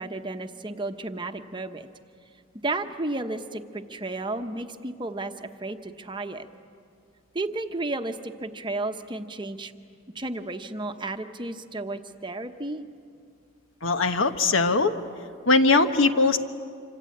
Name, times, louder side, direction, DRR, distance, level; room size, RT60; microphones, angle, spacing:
voice 1, 0.0-1.9 2.6-6.5 7.3-9.7 10.1-12.8, right 2 dB, 25° right, 6 dB, 0.9 m, -33 dB
voice 2, 13.8-14.9 15.5-16.4, left 3 dB, 70° left, 8 dB, 1.2 m, -20 dB
27.0 x 25.5 x 8.5 m, 2.3 s
head